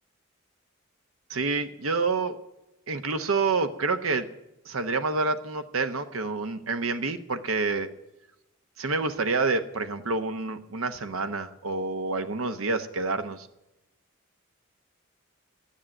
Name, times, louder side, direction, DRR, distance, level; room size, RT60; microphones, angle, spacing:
voice 1, 1.3-2.4 2.9-4.3 4.7-7.9 8.8-13.5, right 3 dB, 90° right, 9 dB, 1.0 m, -28 dB
12.5 x 10.5 x 8.9 m, 0.92 s
head